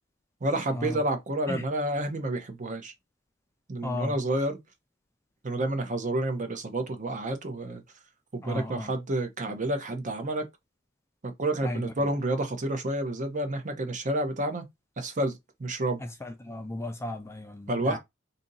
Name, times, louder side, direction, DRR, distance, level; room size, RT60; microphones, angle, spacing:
voice 1, 0.4-2.9 3.7-4.6 5.4-7.8 8.3-10.5 11.2-14.6 15.0-16.0 17.7-18.0, right 1 dB, 40° right, 0.7 m, -29 dB
voice 2, 3.8-4.2 8.4-8.9 11.6-12.1 16.0-18.0, left 1 dB, 15° left, 0.4 m, -35 dB
2.7 x 2.6 x 3.8 m
head